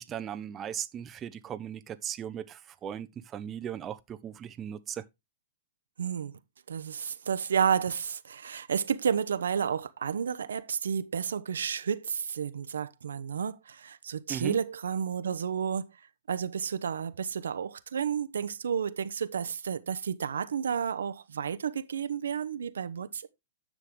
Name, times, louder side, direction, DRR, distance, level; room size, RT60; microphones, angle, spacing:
voice 1, 0.0-5.0 14.3-14.6, right 9 dB, 25° right, 0.7 m, -37 dB
voice 2, 6.0-6.3 6.7-15.8 16.3-23.3, right 7 dB, 80° right, 0.8 m, -31 dB
9.9 x 6.3 x 3.7 m
hypercardioid pair, 120°, 0 cm